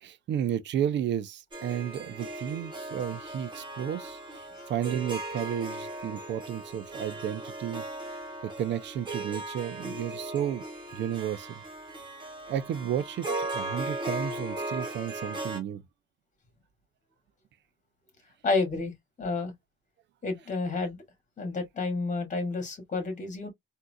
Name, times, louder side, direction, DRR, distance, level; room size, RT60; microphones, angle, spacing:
voice 1, 0.0-7.8 8.4-10.6 10.9-11.6 12.5-15.8, right 10 dB, 70° right, 0.5 m, -32 dB
Harp, 1.5-15.6, right 2 dB, 25° right, 1.5 m, -37 dB
voice 2, 18.4-18.9 19.2-19.5 20.2-21.0 21.4-23.5, left 3 dB, 40° left, 1.9 m, -30 dB
3.7 x 2.7 x 2.2 m
cardioid pair, 105°, 19 cm